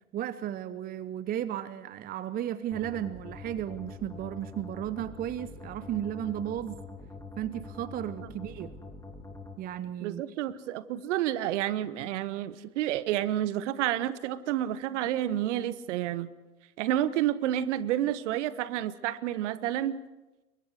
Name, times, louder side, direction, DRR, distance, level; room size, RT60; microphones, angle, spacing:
voice 1, 0.1-6.8 7.4-8.7 9.6-10.2, right 11 dB, 20° right, 15 dB, 0.8 m, -34 dB
sound 1, 2.7-9.5, left 3 dB, 5° left, 3.3 m, -44 dB
voice 2, 10.0-16.3 16.8-20.0, right 12 dB, 55° right, 15 dB, 1.3 m, -30 dB
28.5 x 23.5 x 4.9 m, 1.1 s
figure-of-eight pair, 100°, 44 cm